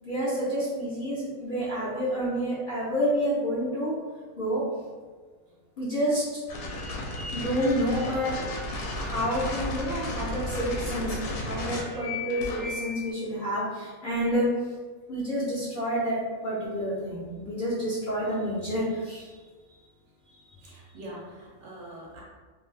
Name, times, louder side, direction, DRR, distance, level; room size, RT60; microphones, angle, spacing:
voice 1, 0.0-3.9 4.4-4.6 5.8-6.2 7.3-8.5 9.0-14.5 15.1-19.3, equal, 50° left, -9 dB, 0.7 m, -29 dB
sound 1, 6.5-13.1, left 2 dB, 85° left, 1.1 m, -34 dB
voice 2, 20.6-22.2, right 1 dB, 60° right, -4 dB, 0.9 m, -43 dB
2.6 x 2.4 x 3.2 m, 1.4 s
omnidirectional pair, 1.5 m